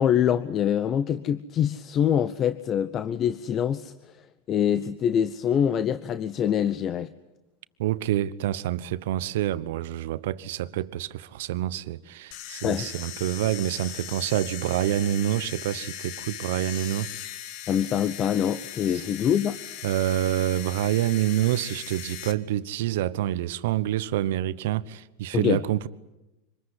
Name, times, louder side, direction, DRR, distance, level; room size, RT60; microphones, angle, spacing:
voice 1, 0.0-3.9 4.5-7.1 12.6-12.9 17.7-19.6 25.3-25.6, left 9 dB, 35° left, 0.9 m, -24 dB
voice 2, 7.8-17.1 19.8-25.9, right 13 dB, 75° right, 1.1 m, -27 dB
sound 1, 12.3-22.3, left 11 dB, 60° left, 1.8 m, -39 dB
25.5 x 20.5 x 9.9 m
supercardioid pair, 115°, 0 cm